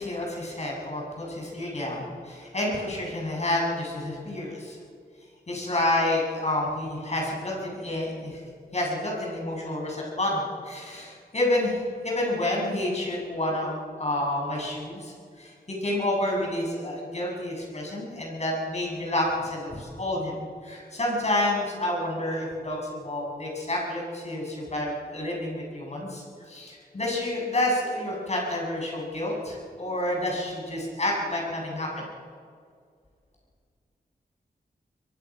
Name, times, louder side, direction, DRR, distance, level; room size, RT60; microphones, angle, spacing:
voice 1, 0.0-4.8 5.5-8.4 8.7-32.1, left 1 dB, 40° left, -2 dB, 7.7 m, -29 dB
23.5 x 22.5 x 6.2 m, 2.2 s
wide cardioid pair, 80°, 17 cm